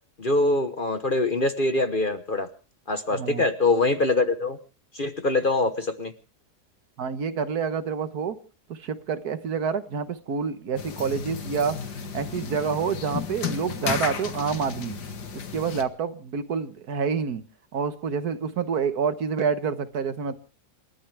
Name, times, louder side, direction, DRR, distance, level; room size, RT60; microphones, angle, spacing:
voice 1, 0.2-2.5 2.9-4.6 4.9-6.1, left 2 dB, 35° left, 1.1 m, -24 dB
voice 2, 3.1-3.4 7.0-8.4 8.7-11.8 12.1-15.0 15.5-17.4 17.7-20.4, right 6 dB, 70° right, 1.6 m, -28 dB
sound 1, 10.8-15.8, left 6 dB, 80° left, 2.0 m, -33 dB
28.0 x 13.0 x 3.4 m
omnidirectional pair, 1.7 m